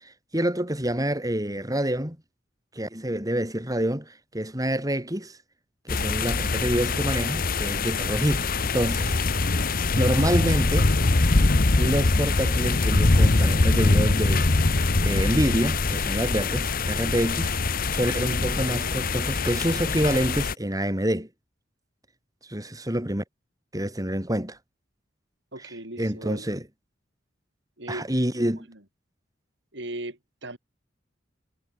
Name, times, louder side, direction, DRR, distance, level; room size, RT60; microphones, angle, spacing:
voice 1, 0.0-2.2 2.7-5.4 5.9-9.1 10.0-10.9 11.8-21.3 22.5-23.2 23.7-24.6 26.0-26.6 27.9-28.7, right 1 dB, 20° right, 5.9 m, -27 dB
sound 1, 5.9-20.5, left 3 dB, 50° left, 1.1 m, -23 dB
voice 2, 25.5-26.5 27.8-28.4 28.7-28.8 29.7-30.6, right 1 dB, 65° right, 6.2 m, -38 dB
head